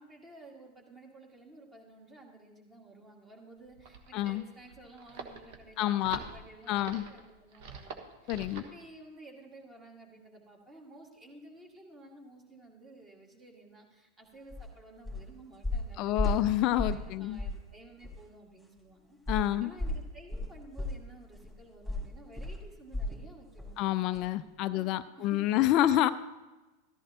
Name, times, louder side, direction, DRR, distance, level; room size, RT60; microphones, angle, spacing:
voice 1, 0.0-19.2 19.6-24.8 25.1-26.0, right 1 dB, 20° right, 1 dB, 2.1 m, -53 dB
sound 1, 3.6-8.8, right 4 dB, 50° right, 1.2 m, -46 dB
voice 2, 4.1-4.4 5.8-6.2 6.7-7.1 8.3-8.6 16.0-17.4 19.3-19.7 23.8-26.1, left 13 dB, 40° left, 12 dB, 0.4 m, -28 dB
sound 2, 14.5-14.7 15.0-15.3 15.6-17.1 17.4-17.6 18.0-18.1 19.3-23.3 23.6-23.8 24.1-24.2, left 2 dB, ahead, 2.3 m, -34 dB
14.0 x 13.5 x 2.9 m, 1.1 s
figure-of-eight pair, 90°, 0 cm